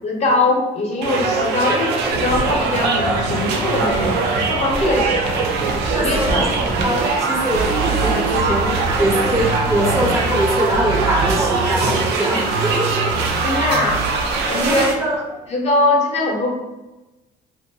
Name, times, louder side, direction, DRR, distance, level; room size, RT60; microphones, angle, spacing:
voice 1, 0.0-4.2 4.5-5.0 5.9-6.4 11.4-11.5 13.4-14.9 15.5-16.5, left 2 dB, 40° left, -1 dB, 0.7 m, -21 dB
sound 1, 1.0-14.9, right 4 dB, 85° right, 0.4 m, -22 dB
Male speech man speaking / Chatter / Rattle, 2.1-12.1, right 1 dB, 55° right, 0.7 m, -30 dB
voice 2, 5.7-6.5 6.8-13.1 14.6-15.5, right 1 dB, 20° right, -2 dB, 0.5 m, -23 dB
sound 2, 7.5-8.9 9.3-12.1 12.5-14.1, right 5 dB, 90° left, 0.5 m, -27 dB
2.8 x 2.2 x 2.6 m, 1.1 s
cardioid pair, 110°, 17 cm